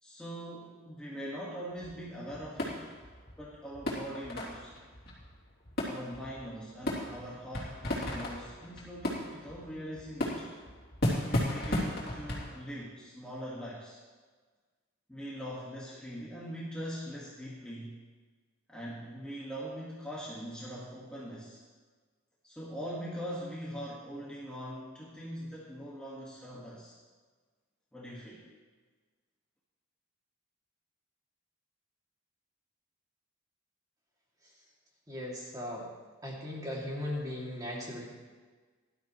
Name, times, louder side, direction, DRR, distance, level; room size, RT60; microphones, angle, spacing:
voice 1, 0.0-3.0 3.4-4.7 5.9-10.5 11.3-14.0 15.1-18.0 18.7-21.6 22.4-26.9 27.9-28.4, equal, 5° left, -7 dB, 1.7 m, -42 dB
sound 1, 1.7-12.5, left 1 dB, 45° left, 3.1 m, -35 dB
voice 2, 35.1-35.9 36.2-38.0, left 1 dB, 20° right, -4 dB, 2.6 m, -37 dB
18.5 x 12.5 x 3.2 m, 1.4 s
head